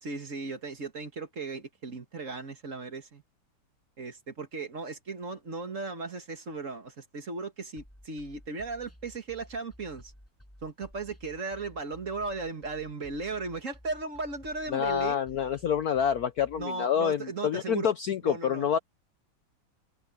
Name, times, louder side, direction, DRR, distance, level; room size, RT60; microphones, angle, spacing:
voice 1, 0.0-3.2 4.0-10.1 10.6-15.2 16.6-17.9 18.2-18.7, right 3 dB, 40° right, 2.0 m, -36 dB
sound 1, 7.8-16.6, equal, 5° left, 6.7 m, -54 dB
voice 2, 14.7-18.8, left 8 dB, 65° left, 1.0 m, -27 dB
omnidirectional pair, 2.2 m